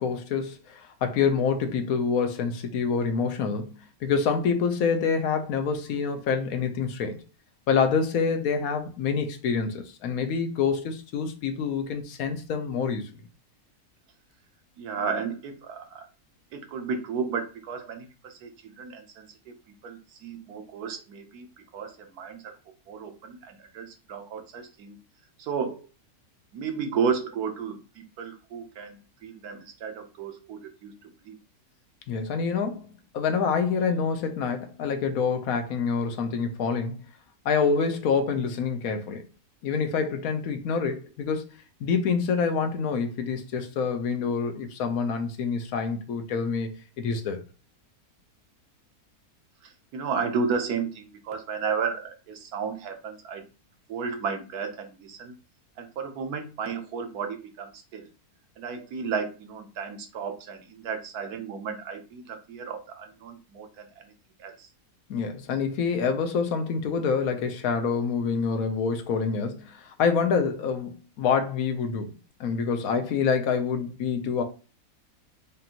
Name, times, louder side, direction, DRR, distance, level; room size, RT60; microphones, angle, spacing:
voice 1, 0.0-7.2 7.7-13.1 32.1-37.0 37.4-39.2 39.6-41.4 41.8-47.4 65.1-74.4, left 5 dB, 75° left, 1.1 m, -27 dB
voice 2, 14.8-16.1 16.5-19.5 19.8-21.4 21.7-22.5 22.9-25.0 25.4-25.9 26.5-31.4 49.6-53.4 53.9-55.3 55.8-58.1 58.6-64.1 64.4-64.7, right 5 dB, 90° right, 1.3 m, -33 dB
5.2 x 2.5 x 2.8 m
omnidirectional pair, 1.6 m